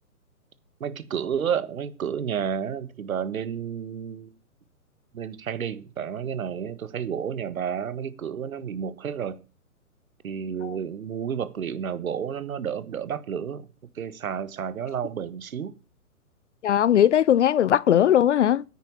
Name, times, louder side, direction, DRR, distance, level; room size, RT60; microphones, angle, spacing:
voice 1, 0.8-4.3 5.1-9.4 10.2-13.7 14.0-15.8, right 8 dB, 65° right, 1.6 m, -31 dB
voice 2, 16.6-18.6, left 10 dB, 50° left, 0.5 m, -19 dB
10.0 x 9.1 x 5.7 m
hypercardioid pair, 140°, 45 cm